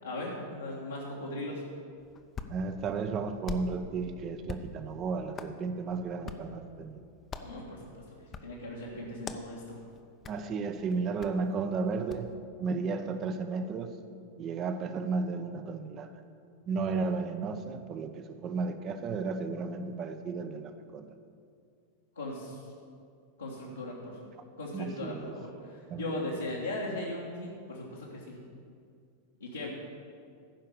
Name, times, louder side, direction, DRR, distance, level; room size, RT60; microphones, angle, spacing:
voice 1, 0.0-1.6 7.4-7.8 8.1-8.2 8.4-9.8 22.2-22.7 23.4-24.2 24.6-28.4 29.4-29.7, left 1 dB, 80° left, -7 dB, 1.6 m, -38 dB
Hands, 2.0-12.3, left 6 dB, 25° left, 0.7 m, -46 dB
voice 2, 2.5-7.0 10.3-12.3 12.6-14.0 14.4-16.1 16.7-21.2 24.7-25.4 25.9-26.3, right 4 dB, 30° right, 9 dB, 0.7 m, -33 dB
14.5 x 5.6 x 7.0 m, 2.3 s
figure-of-eight pair, 90°, 0 cm